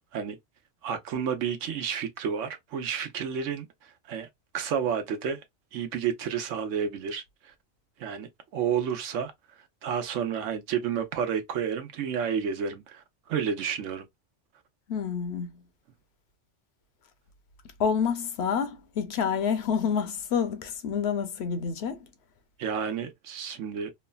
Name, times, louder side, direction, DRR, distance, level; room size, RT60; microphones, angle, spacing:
voice 1, 0.8-4.3 4.5-5.4 5.7-7.5 8.0-9.3 9.8-14.1 22.6-23.9, right 7 dB, 85° right, 1.1 m, -31 dB
voice 2, 14.9-15.5 17.8-22.1, left 7 dB, 65° left, 0.8 m, -28 dB
3.1 x 2.1 x 2.3 m
omnidirectional pair, 1.3 m